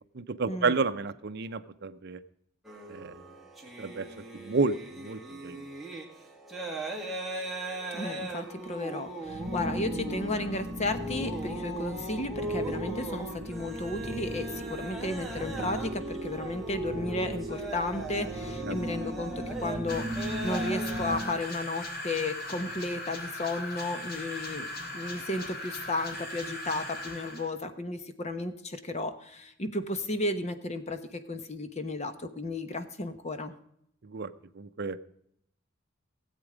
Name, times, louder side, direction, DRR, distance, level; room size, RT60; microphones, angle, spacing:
voice 1, 0.1-2.2 2.9-3.2 3.8-4.1 4.3-5.6 18.7-18.8 34.0-35.0, right 4 dB, 55° right, 12 dB, 0.6 m, -31 dB
sound 1, 2.6-21.4, right 2 dB, ahead, 2.0 m, -39 dB
voice 2, 7.9-20.1 20.4-24.7 24.9-33.5, left 2 dB, 35° left, 9 dB, 1.1 m, -34 dB
sound 2, 9.2-21.2, right 1 dB, 20° right, 2.3 m, -37 dB
sound 3, 19.9-27.5, left 1 dB, 50° left, 2.2 m, -39 dB
17.0 x 8.2 x 5.0 m, 0.73 s
head